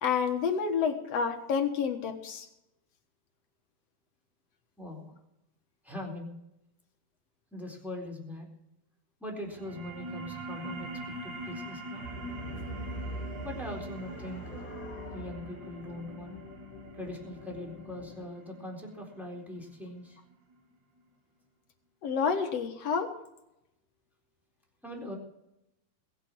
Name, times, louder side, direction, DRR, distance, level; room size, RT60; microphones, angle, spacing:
voice 1, 0.0-2.5 22.0-23.1, left 6 dB, 55° left, 4 dB, 2.0 m, -29 dB
voice 2, 4.8-5.1 5.8-6.3 7.5-8.5 9.2-10.9 11.2-12.1 13.4-14.4 15.1-16.4 16.9-20.2 24.8-25.1, left 1 dB, ahead, -1 dB, 3.5 m, -41 dB
sound 1, 9.4-20.5, right 2 dB, 40° right, 2.0 m, -44 dB
sound 2, 12.0-18.2, equal, 70° left, 0.9 m, -42 dB
21.5 x 7.7 x 6.2 m, 0.85 s
omnidirectional pair, 4.4 m